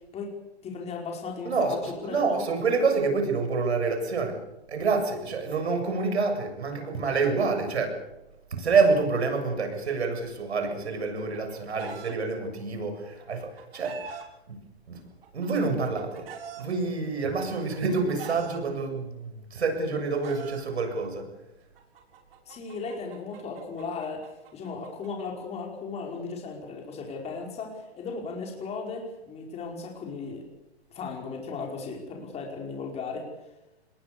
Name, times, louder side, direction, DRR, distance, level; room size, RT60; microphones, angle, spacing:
voice 1, 0.6-2.4 22.5-30.4 30.9-33.3, left 4 dB, 20° left, 1 dB, 4.9 m, -36 dB
voice 2, 1.4-8.0 8.5-14.1 14.5-14.6 14.9-15.0 15.3-16.3 16.6-21.3, right 4 dB, 85° right, 5 dB, 7.6 m, -27 dB
Chicken rooster, 11.0-12.1 13.2-14.2 15.2-16.6 17.5-18.6 19.6-20.6 21.8-25.1, right 7 dB, 65° right, 6.8 m, -43 dB
26.5 x 21.5 x 6.9 m, 0.94 s
hypercardioid pair, 135°, 32 cm